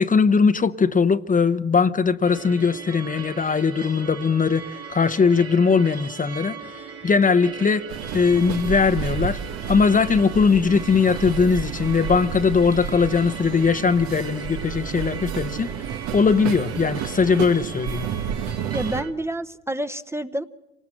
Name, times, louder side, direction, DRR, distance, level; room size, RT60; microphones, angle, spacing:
voice 1, 0.0-9.4 9.7-15.7 16.1-18.1, left 5 dB, 25° left, 0.9 m, -20 dB
sound 1, 2.2-19.1, right 6 dB, 50° right, 2.3 m, -38 dB
sound 2, 7.9-19.0, right 8 dB, 65° right, 1.3 m, -31 dB
voice 2, 18.7-20.4, right 1 dB, 10° right, 1.0 m, -28 dB
26.5 x 19.5 x 7.7 m
hypercardioid pair, 70°, 30 cm